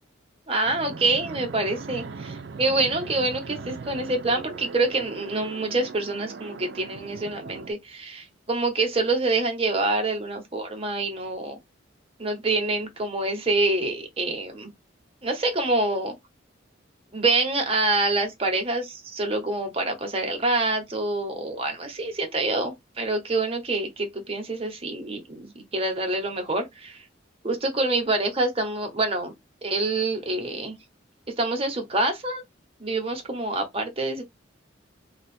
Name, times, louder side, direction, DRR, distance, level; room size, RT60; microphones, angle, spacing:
voice 1, 0.5-11.6 12.2-14.7 15.2-16.2 17.1-27.0 27.4-29.3 29.6-30.8 31.4-32.4 32.8-34.2, right 2 dB, 30° right, 0.9 m, -26 dB
Fixed-wing aircraft airplane, 0.7-7.7, right 4 dB, 60° right, 0.4 m, -39 dB
2.8 x 2.4 x 4.2 m
head